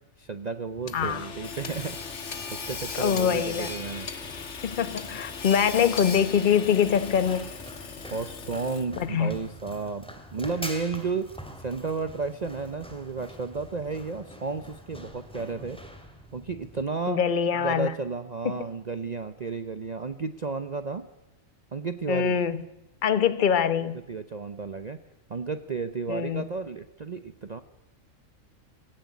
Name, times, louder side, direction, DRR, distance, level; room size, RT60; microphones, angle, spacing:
voice 1, 0.2-2.0 2.5-4.1 8.1-10.0 10.3-11.3 11.6-15.8 16.3-17.2 17.5-21.1 21.7-22.4 24.1-25.0 25.3-27.6, right 4 dB, 35° right, 10 dB, 0.8 m, -32 dB
Run, 0.8-16.8, equal, 5° left, 2.4 m, -45 dB
Hammer / Sawing, 0.9-9.0, left 5 dB, 60° left, 1.7 m, -37 dB
voice 2, 0.9-1.2 2.9-3.7 4.6-7.5 9.0-9.3 17.1-17.9 18.4-18.6 22.1-22.6 23.0-24.0 26.1-26.5, left 8 dB, 40° left, 13 dB, 1.1 m, -24 dB
19.5 x 17.0 x 9.5 m, 0.94 s
omnidirectional pair, 1.4 m